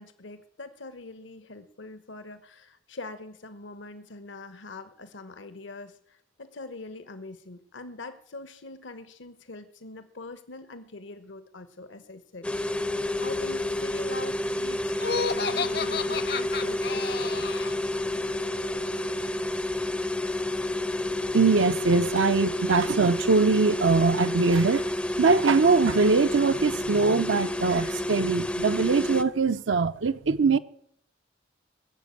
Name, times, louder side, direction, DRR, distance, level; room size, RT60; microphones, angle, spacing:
voice 1, 0.0-17.6, left 3 dB, 75° left, 1.1 m, -43 dB
sound 1, 12.4-29.2, left 1 dB, 5° left, 0.5 m, -29 dB
Laughter, 15.0-17.8, left 5 dB, 55° left, 0.8 m, -31 dB
voice 2, 21.3-24.9 25.2-30.6, right 4 dB, 75° right, 0.6 m, -22 dB
19.5 x 7.5 x 8.4 m
head